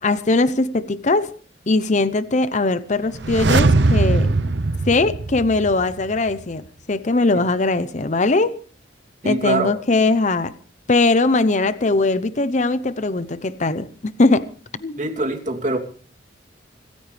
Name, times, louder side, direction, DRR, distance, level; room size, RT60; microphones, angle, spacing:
voice 1, 0.0-1.3 1.7-4.3 4.9-8.6 9.2-10.5 10.9-14.5 14.8-15.0, left 3 dB, 40° left, 0.8 m, -20 dB
sound 1, 3.1-6.0 6.3-6.4, right 3 dB, 75° right, 0.8 m, -20 dB
voice 2, 9.2-9.8 15.0-15.8, right 2 dB, 45° right, 3.0 m, -23 dB
25.5 x 14.5 x 3.4 m
head